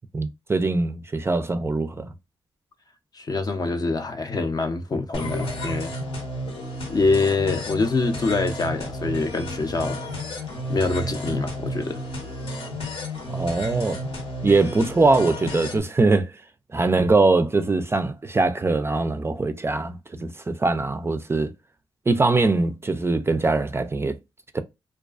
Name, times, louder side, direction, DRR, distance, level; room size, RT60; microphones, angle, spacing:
voice 1, 0.1-2.1 13.3-14.0 14.4-16.3 16.7-21.5 22.1-24.2 24.5-24.6, right 3 dB, 25° right, 0.3 m, -22 dB
voice 2, 3.1-5.9 6.9-10.0 10.7-12.0, left 3 dB, 40° left, 0.5 m, -25 dB
sound 1, 5.1-15.8, equal, 75° left, 0.9 m, -32 dB
2.4 x 2.3 x 2.3 m
cardioid pair, 60°, 10 cm